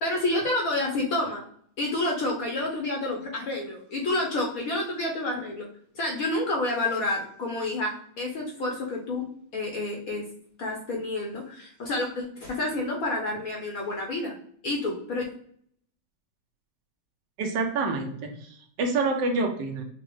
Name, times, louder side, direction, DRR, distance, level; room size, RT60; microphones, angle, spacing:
voice 1, 0.0-1.4 1.8-5.7 5.9-9.2 9.5-10.2 10.6-14.4 14.6-15.2, left 2 dB, 60° left, -1 dB, 1.0 m, -29 dB
voice 2, 17.4-18.5 18.8-19.8, right 3 dB, 70° right, 3 dB, 1.2 m, -27 dB
6.0 x 2.1 x 3.0 m, 0.63 s
omnidirectional pair, 2.1 m